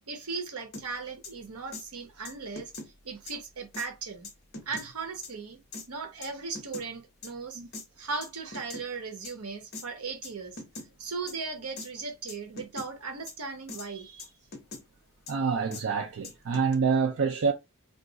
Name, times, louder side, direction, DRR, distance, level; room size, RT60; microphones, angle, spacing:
voice 1, 0.1-2.7 3.0-4.3 4.7-5.6 5.9-7.6 8.0-10.6 11.0-14.3, right 4 dB, 80° right, 0.9 m, -37 dB
sound 1, 0.7-0.9 1.2-1.3 1.7-1.8 2.2-2.9 3.3-3.4 3.7-3.9 4.2-4.9 5.2-5.3 5.7-5.9 6.2-6.9 7.2-7.3 7.7-7.8 8.2-8.9 9.2-9.3 9.7-9.9 10.2-10.3 10.6-10.9 11.3-11.4 11.8-11.9 12.3-12.9 13.3-13.4 13.7-13.9 14.2-14.8 15.3-15.4 15.7-15.8 16.2-16.7, left 3 dB, 45° left, 0.9 m, -41 dB
voice 2, 15.3-17.5, right 5 dB, 65° right, 0.5 m, -27 dB
2.5 x 2.4 x 3.8 m
head